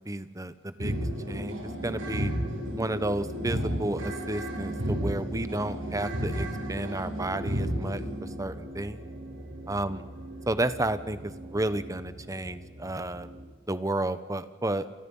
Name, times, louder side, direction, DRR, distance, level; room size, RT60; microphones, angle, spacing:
voice 1, 0.1-0.9 1.3-1.5 1.8-2.3 2.8-8.0 8.4-9.0 9.7-10.0 10.5-11.2 11.5-13.3 13.7-14.9, right 1 dB, 15° right, 13 dB, 1.2 m, -31 dB
sound 1, 0.8-13.4, equal, 85° right, 7.4 m, -34 dB
29.5 x 27.5 x 5.7 m, 1.3 s
head